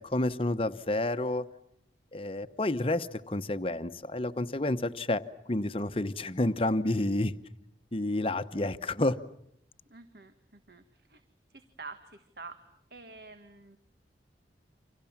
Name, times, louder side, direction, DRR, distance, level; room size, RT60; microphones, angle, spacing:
voice 1, 0.0-1.5 2.1-7.3 7.9-9.2, left 1 dB, 30° left, 10 dB, 1.0 m, -30 dB
voice 2, 9.9-10.8 11.1-11.2 11.5-12.6 12.9-13.8, right 4 dB, 60° right, 9 dB, 1.6 m, -47 dB
29.5 x 26.0 x 7.3 m, 0.74 s
head